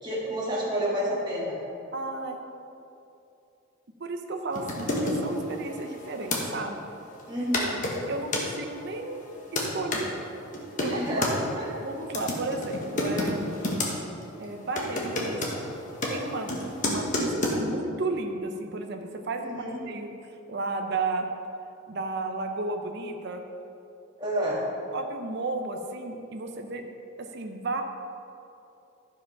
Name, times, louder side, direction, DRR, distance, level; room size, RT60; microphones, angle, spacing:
voice 1, 0.0-1.6 7.3-7.9 10.8-11.7 19.4-19.8 24.2-24.7, equal, 20° right, -6 dB, 2.1 m, -30 dB
voice 2, 1.9-2.5 4.0-6.8 8.1-10.1 10.8-11.3 11.8-13.6 14.4-15.5 16.1-19.6 19.9-20.1 20.5-21.3 21.9-23.5 24.9-26.9 27.2-27.8, right 3 dB, 55° right, 4 dB, 0.6 m, -33 dB
sound 1, 4.5-6.4 7.2-7.3 7.5-8.5 9.1-10.0 10.5-11.3 12.0-13.9 14.2-14.4 14.8-17.6, left 1 dB, 40° left, 1.3 m, -30 dB
11.5 x 5.0 x 5.8 m, 2.8 s
head